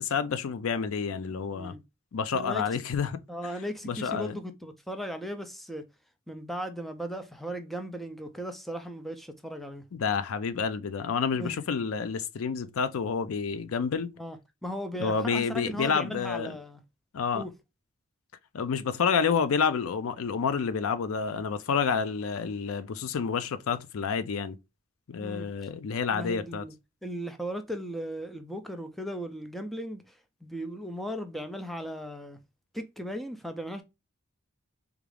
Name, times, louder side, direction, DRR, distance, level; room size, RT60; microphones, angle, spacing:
voice 1, 0.0-1.8 2.1-3.2 3.8-4.4 9.9-14.1 15.0-16.6 17.1-17.4 18.5-24.6 25.1-26.6, left 6 dB, 75° left, 0.4 m, -29 dB
voice 2, 3.3-5.9 6.3-9.8 11.3-11.6 14.2-16.8 17.3-17.5 25.2-25.5 26.1-26.7 27.0-32.4 32.7-33.8, equal, ahead, 0.4 m, -37 dB
3.5 x 2.4 x 3.2 m
head